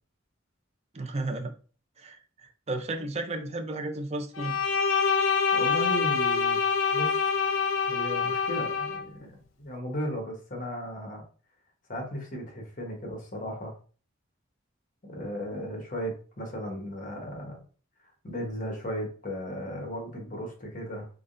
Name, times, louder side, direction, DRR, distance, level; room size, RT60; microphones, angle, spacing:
voice 1, 0.9-1.5 2.0-2.2 2.4-4.6, right 2 dB, 30° right, 0.6 m, -33 dB
Bowed string instrument, 4.4-9.0, left 5 dB, 85° left, 0.6 m, -26 dB
voice 2, 5.5-6.6 6.9-7.2 7.9-11.2 11.9-13.7 15.1-17.6 18.2-21.1, equal, 40° left, 1.1 m, -35 dB
3.6 x 3.2 x 2.5 m
head